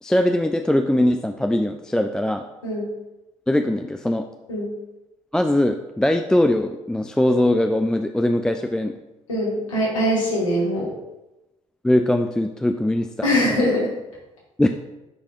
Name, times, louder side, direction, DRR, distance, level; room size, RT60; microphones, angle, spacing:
voice 1, 0.0-2.5 3.5-4.2 5.3-8.9 11.8-13.6 14.6-14.7, left 1 dB, 5° left, 5 dB, 0.3 m, -21 dB
voice 2, 9.3-10.9 13.2-13.9, equal, 80° left, -6 dB, 2.2 m, -22 dB
8.7 x 4.8 x 2.5 m, 0.99 s
figure-of-eight pair, 50°, 17 cm